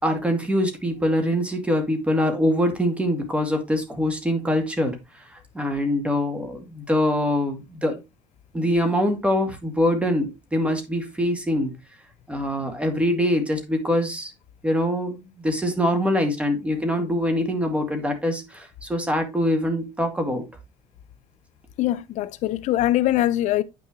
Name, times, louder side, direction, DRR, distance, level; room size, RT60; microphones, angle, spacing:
voice 1, 0.0-5.0 5.3-8.0 8.5-11.7 12.3-14.3 14.6-20.4, equal, 10° right, 2.3 m, -24 dB
voice 2, 21.8-23.6, left 14 dB, 70° left, 0.6 m, -22 dB
8.9 x 6.2 x 3.1 m
cardioid pair, 135°, 13 cm